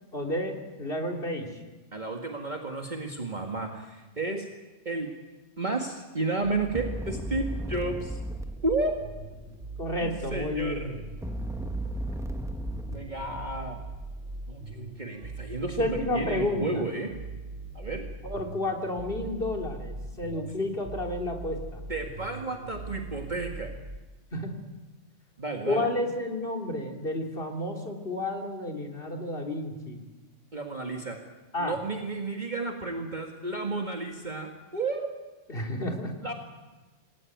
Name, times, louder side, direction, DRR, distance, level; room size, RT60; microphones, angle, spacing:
voice 1, 0.1-1.5 9.8-11.0 15.8-16.8 18.2-21.8 24.3-24.5 25.7-30.0 31.5-31.8 35.5-36.1, left 1 dB, 50° left, 2 dB, 3.5 m, -31 dB
voice 2, 1.9-4.5 4.9-5.1 5.6-8.2 8.6-8.9 10.0-11.0 12.9-13.8 14.5-17.1 17.7-18.0 20.3-20.5 21.9-23.7 25.4-25.9 30.5-31.2 31.6-35.1 36.2-36.3, right 3 dB, 35° right, 2 dB, 2.1 m, -32 dB
sound 1, 6.4-9.7 10.9-14.2, equal, 5° right, 1.1 m, -36 dB
sound 2, 7.1-24.0, right 2 dB, 65° right, 2.4 m, -41 dB
27.0 x 19.0 x 9.4 m, 1.2 s
omnidirectional pair, 1.3 m